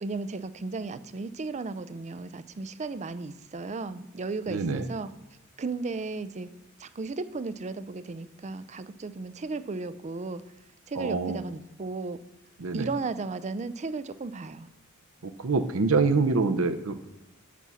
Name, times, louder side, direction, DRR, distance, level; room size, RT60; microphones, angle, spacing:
voice 1, 0.0-5.1 5.6-6.5 6.8-10.4 10.9-12.2 12.7-14.7, right 3 dB, 35° right, 13 dB, 0.5 m, -35 dB
voice 2, 4.5-4.9 10.9-11.4 12.6-12.9 15.2-17.1, right 4 dB, 70° right, 7 dB, 0.7 m, -26 dB
8.3 x 6.1 x 6.9 m, 0.91 s
head